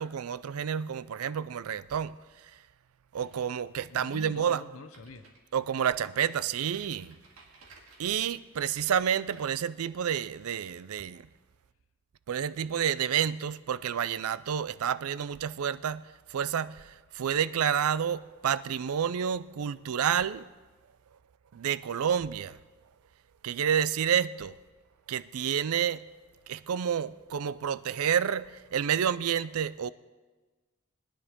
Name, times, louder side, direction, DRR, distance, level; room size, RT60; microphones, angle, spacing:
voice 1, 0.0-2.5 3.1-4.6 5.5-7.2 8.0-11.3 12.3-20.5 21.5-22.6 23.4-24.6 25.1-26.1 26.5-29.9, right 8 dB, 85° right, 0.4 m, -29 dB
sound 1, 3.1-9.5, right 3 dB, 65° right, 2.2 m, -56 dB
voice 2, 3.9-5.3, left 3 dB, 70° left, 0.9 m, -46 dB
21.5 x 10.0 x 3.7 m
head